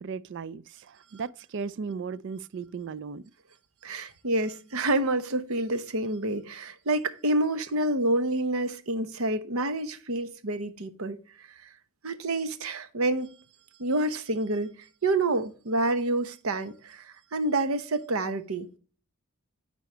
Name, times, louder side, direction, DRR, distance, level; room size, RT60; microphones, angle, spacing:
voice 1, 0.0-3.2, right 5 dB, 55° right, 0.4 m, -36 dB
voice 2, 3.8-11.7 12.0-13.3 13.8-14.7 15.0-18.8, right 2 dB, 75° right, 0.9 m, -28 dB
9.7 x 4.1 x 4.4 m
head